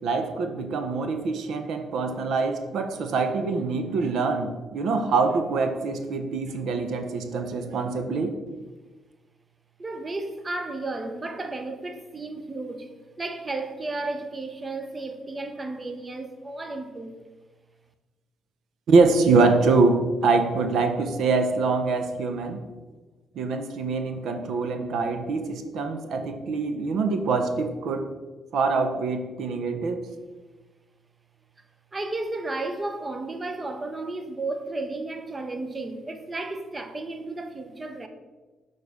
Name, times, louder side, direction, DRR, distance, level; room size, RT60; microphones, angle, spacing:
voice 1, 0.0-8.4 18.9-22.6 23.4-28.1 28.5-30.0, right 4 dB, 75° right, 0.7 m, -24 dB
voice 2, 9.8-17.2 31.9-38.1, right 2 dB, 25° right, 0.7 m, -33 dB
6.9 x 4.0 x 4.8 m
cardioid pair, 90°, 0 cm